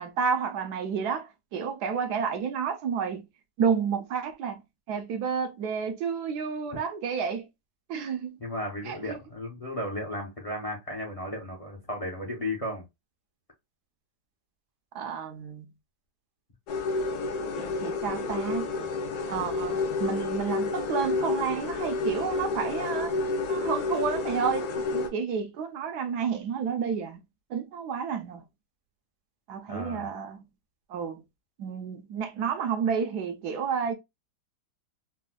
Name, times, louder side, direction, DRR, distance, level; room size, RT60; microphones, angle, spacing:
voice 1, 0.0-3.2 3.6-4.6 4.9-7.4 7.9-8.4 8.8-9.2 14.9-15.7 17.5-18.7 19.3-23.1 23.5-27.2 27.5-28.4 29.5-30.5 30.9-31.2 31.6-33.9, right 6 dB, 75° right, 1.1 m, -30 dB
voice 2, 8.4-12.9 29.7-30.1, left 1 dB, 40° left, 0.5 m, -34 dB
sound 1, 16.7-25.1, left 3 dB, 65° left, 1.1 m, -30 dB
4.2 x 2.1 x 2.2 m
omnidirectional pair, 1.9 m